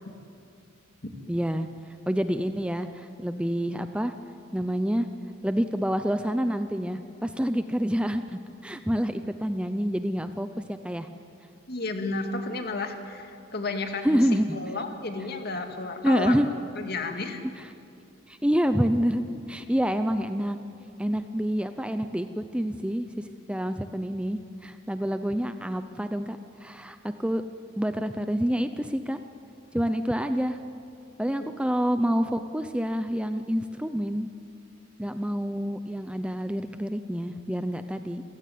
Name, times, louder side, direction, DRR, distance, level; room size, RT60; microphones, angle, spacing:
voice 1, 1.3-1.7 2.1-4.1 4.5-5.1 5.4-11.1 14.0-14.6 16.0-16.5 17.6-17.7 18.3-20.6 21.0-27.4 27.8-29.2 29.7-30.6 31.2-34.3 35.0-38.2, equal, 5° right, 9 dB, 0.6 m, -27 dB
voice 2, 11.7-16.3 16.8-17.4 31.4-31.5, left 3 dB, 50° left, 5 dB, 2.2 m, -32 dB
28.0 x 16.5 x 9.3 m, 2.5 s
head